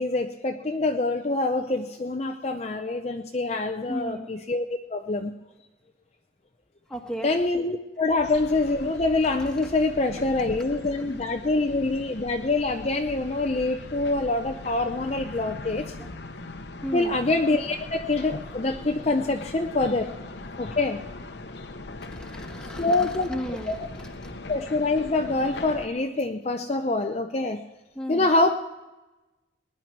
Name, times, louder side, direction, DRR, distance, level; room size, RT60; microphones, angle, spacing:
voice 1, 0.0-4.7 4.9-5.3 7.2-15.9 16.9-20.1 20.6-21.0 22.8-23.3 23.7-23.8 24.5-27.6 28.1-28.5, left 2 dB, 35° left, 4 dB, 0.6 m, -25 dB
voice 2, 3.9-4.3 6.9-7.3 16.0-16.1 16.8-17.2 22.1-24.4 27.9-28.3, equal, 5° left, 2 dB, 1.4 m, -35 dB
sound 1, 8.2-25.9, left 2 dB, 60° left, 0.9 m, -41 dB
20.0 x 11.0 x 4.6 m, 1.1 s
head